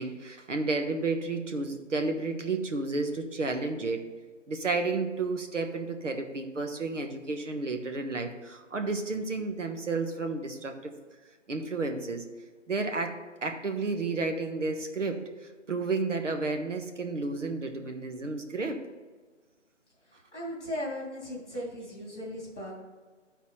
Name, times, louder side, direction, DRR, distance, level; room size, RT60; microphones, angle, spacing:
voice 1, 0.0-4.1 4.5-10.9 11.5-12.2 12.7-15.2 15.7-18.8, right 3 dB, 70° right, 5 dB, 1.2 m, -31 dB
voice 2, 20.3-22.8, equal, 5° left, -15 dB, 1.5 m, -37 dB
12.0 x 4.1 x 4.1 m, 1.4 s
figure-of-eight pair, 175°, 38 cm